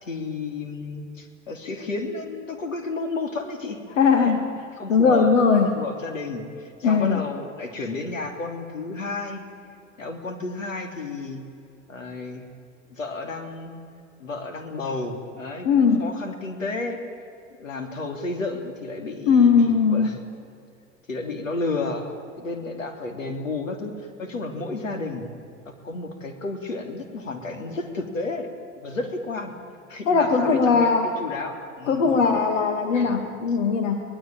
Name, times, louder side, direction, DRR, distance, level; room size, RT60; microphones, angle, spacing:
voice 1, 0.0-3.8 4.2-4.4 4.8-5.3 5.6-9.4 10.0-11.4 11.9-12.4 12.9-13.8 14.2-17.0 17.6-20.2 21.1-25.3 25.6-28.5 28.8-29.5 29.9-32.2 32.9-33.2, left 3 dB, 85° left, 5 dB, 3.3 m, -32 dB
voice 2, 4.0-4.4 4.9-5.7 6.8-7.2 15.6-16.1 19.3-20.2 30.1-31.1 31.9-34.0, left 5 dB, 70° left, 5 dB, 2.4 m, -19 dB
24.5 x 19.0 x 9.0 m, 2.5 s
hypercardioid pair, 85°, 38 cm